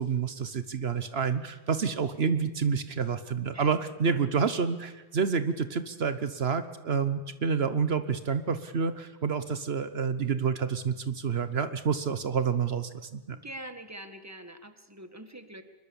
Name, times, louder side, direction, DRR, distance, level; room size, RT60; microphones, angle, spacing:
voice 1, 0.0-13.4, right 6 dB, 70° right, 11 dB, 1.3 m, -28 dB
voice 2, 13.3-15.6, right 1 dB, 15° right, 8 dB, 1.7 m, -44 dB
24.5 x 21.0 x 7.1 m, 1.2 s
omnidirectional pair, 1.1 m